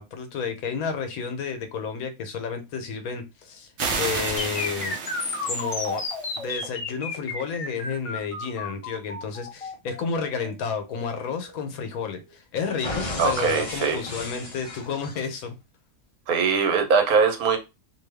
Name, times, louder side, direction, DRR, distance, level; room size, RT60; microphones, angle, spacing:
voice 1, 0.0-3.7 4.0-5.0 5.5-6.0 6.4-15.6, left 5 dB, 80° left, 1.1 m, -31 dB
sound 1, 3.8-6.4, right 4 dB, 60° right, 0.8 m, -31 dB
sound 2, 4.4-12.3 12.8-15.4, left 3 dB, 45° left, 0.4 m, -33 dB
voice 2, 13.2-14.0 16.3-17.6, right 5 dB, 85° right, 1.2 m, -21 dB
2.7 x 2.3 x 3.3 m
omnidirectional pair, 1.5 m